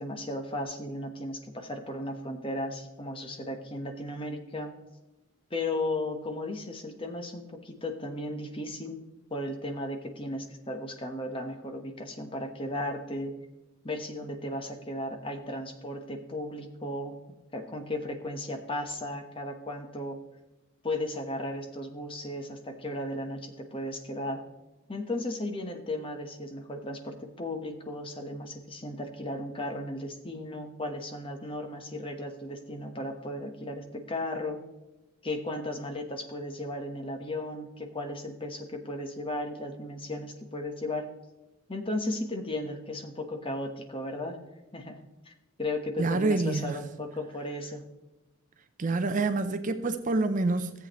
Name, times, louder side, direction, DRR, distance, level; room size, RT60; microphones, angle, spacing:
voice 1, 0.0-4.8 5.5-9.0 9.3-13.4 13.8-17.2 17.5-20.2 20.8-24.4 24.9-34.6 35.2-41.1 41.7-44.4 44.7-45.3 45.6-47.9, left 1 dB, 25° left, 1.1 m, -35 dB
voice 2, 46.0-46.9 48.8-50.7, right 3 dB, 35° right, 0.5 m, -27 dB
14.5 x 8.1 x 3.1 m
head